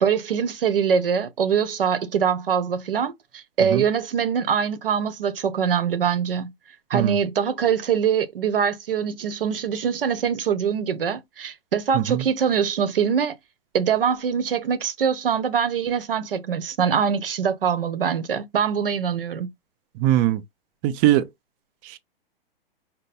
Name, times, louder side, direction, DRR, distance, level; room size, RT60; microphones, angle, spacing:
voice 1, 0.0-6.5 6.9-13.3 13.7-19.5, right 7 dB, 70° right, 0.9 m, -23 dB
voice 2, 11.9-12.2 20.0-20.4 20.8-21.3 21.9-22.0, right 13 dB, 30° right, 0.7 m, -21 dB
5.3 x 2.2 x 4.0 m
figure-of-eight pair, 110°, 29 cm